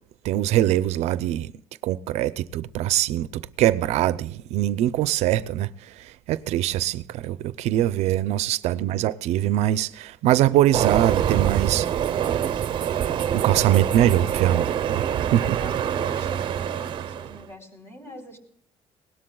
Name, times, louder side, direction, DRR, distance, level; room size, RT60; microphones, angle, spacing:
voice 1, 0.2-1.5 1.8-11.9 13.3-15.0 15.3-15.6, right 13 dB, 75° right, 0.5 m, -23 dB
Train, 10.7-17.4, right 9 dB, 45° right, 0.8 m, -25 dB
voice 2, 15.4-18.4, equal, 25° left, 3.7 m, -43 dB
21.0 x 18.0 x 2.3 m
cardioid pair, 150°, 11 cm